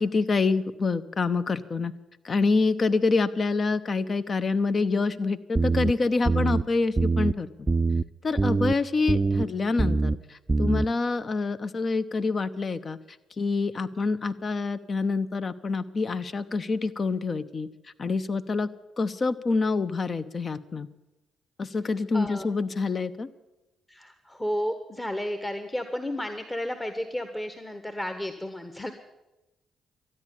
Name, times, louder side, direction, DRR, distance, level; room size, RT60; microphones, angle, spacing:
voice 1, 0.0-1.9 2.2-7.5 8.2-13.0 13.4-17.7 18.0-18.7 19.0-20.9 21.6-23.3, left 3 dB, 40° left, 11 dB, 0.8 m, -26 dB
sound 1, 5.5-5.9 6.2-6.6 7.0-7.3 7.7-8.0 8.4-8.7 9.1-9.4 9.8-10.1 10.5-10.9, right 3 dB, 30° right, 0.5 m, -23 dB
voice 2, 21.8-22.5 23.9-28.9, equal, 15° left, 7 dB, 1.3 m, -32 dB
13.0 x 9.9 x 9.9 m, 1.0 s
figure-of-eight pair, 40°, 0 cm